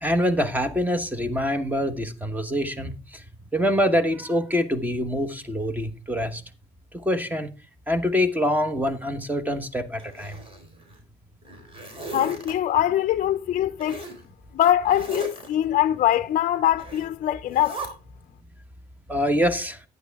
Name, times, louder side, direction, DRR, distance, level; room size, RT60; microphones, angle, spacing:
voice 1, 0.0-3.2 3.5-6.4 7.0-7.5 7.9-10.4 19.1-19.8, equal, 10° right, 1.2 m, -25 dB
Zipper (clothing), 10.0-11.0 11.4-12.5 13.8-14.2 14.8-15.5 16.8-17.1 17.5-17.9, right 2 dB, 35° right, 4.2 m, -37 dB
voice 2, 12.1-14.0 14.5-17.8, left 12 dB, 50° left, 0.5 m, -22 dB
11.0 x 9.4 x 3.5 m
cardioid pair, 110°, 17 cm